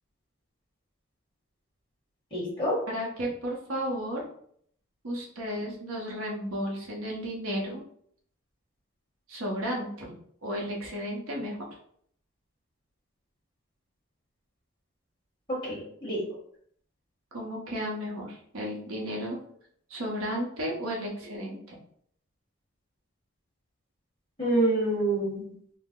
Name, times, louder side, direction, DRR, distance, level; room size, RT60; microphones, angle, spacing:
voice 1, 2.3-2.8 15.5-16.2 24.4-25.5, right 1 dB, 25° left, -6 dB, 1.5 m, -27 dB
voice 2, 2.9-4.2 5.0-7.8 9.3-9.9 10.4-11.6 17.3-19.4 19.9-21.6, equal, 85° right, -2 dB, 0.9 m, -33 dB
3.2 x 2.0 x 3.7 m, 0.64 s
head